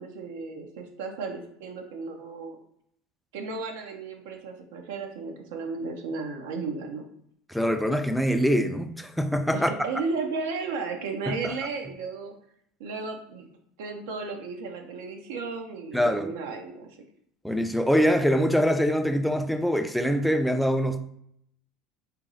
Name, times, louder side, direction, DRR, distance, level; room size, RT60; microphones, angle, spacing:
voice 1, 0.0-2.6 3.3-7.0 9.5-12.3 12.8-13.5 13.8-16.9, right 4 dB, 85° right, 3 dB, 0.6 m, -34 dB
voice 2, 7.5-9.7 11.3-11.5 15.9-16.3 17.4-21.0, equal, ahead, 7 dB, 0.3 m, -24 dB
4.2 x 2.0 x 3.7 m, 0.71 s
supercardioid pair, 120°, 0 cm